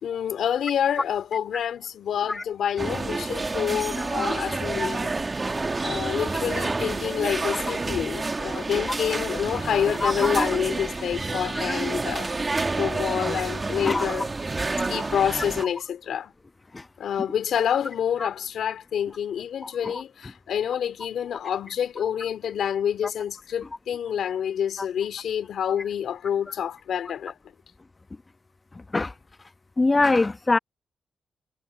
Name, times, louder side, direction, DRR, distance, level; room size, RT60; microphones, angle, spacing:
voice 1, 0.0-5.1 5.8-12.3 12.8-14.3 14.9-16.3 17.0-27.4, left 9 dB, 75° left, 3.1 m, -28 dB
sound 1, 2.8-15.6, right 3 dB, 30° right, 2.0 m, -29 dB
voice 2, 10.0-10.4 13.7-14.1 14.7-14.8 16.7-16.8 18.2-18.3 19.8-19.9 28.9-29.1 29.8-30.6, left 3 dB, 30° left, 1.2 m, -23 dB
cardioid pair, 65°, 0 cm